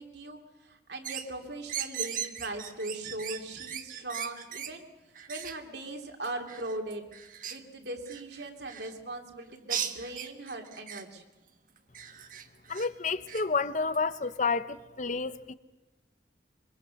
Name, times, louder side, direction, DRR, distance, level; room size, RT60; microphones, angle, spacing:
voice 1, 0.0-4.9 5.3-7.0 7.4-11.2, right 2 dB, 65° right, 2.9 m, -39 dB
sound 1, 1.0-1.3 1.7-4.7 5.1-5.6 6.2-8.9 9.7-11.0 11.8-12.9 13.3-13.4 13.9-14.0 14.2-14.3, right 9 dB, 50° right, 1.3 m, -38 dB
voice 2, 12.7-15.5, left 4 dB, 45° left, 0.8 m, -30 dB
25.0 x 24.0 x 6.5 m
head